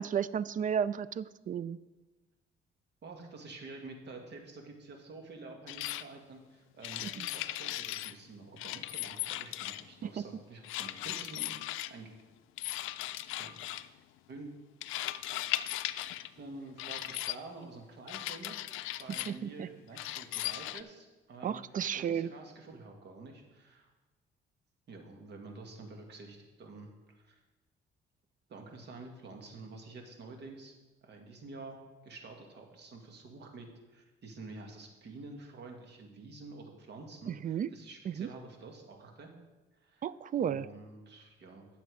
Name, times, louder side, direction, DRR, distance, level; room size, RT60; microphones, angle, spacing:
voice 1, 0.0-1.8 7.0-7.3 10.2-10.3 19.3-19.7 21.4-22.3 37.3-37.7 38.1-38.3 40.0-40.7, right 8 dB, 40° right, 18 dB, 0.4 m, -33 dB
voice 2, 3.0-12.1 13.4-13.5 14.3-14.5 16.4-23.9 24.9-27.4 28.5-30.7 31.0-39.3 39.8-40.1 40.4-41.7, right 3 dB, 60° right, 2 dB, 2.0 m, -49 dB
sound 1, 5.7-6.0 6.8-8.1 8.6-9.9 10.6-11.9 12.6-13.9 14.8-16.3 16.8-17.4 18.1-19.4 19.9-20.8, left 15 dB, 90° left, 0.4 m, -37 dB
10.5 x 7.0 x 4.9 m, 1.2 s
cardioid pair, 90°, 20 cm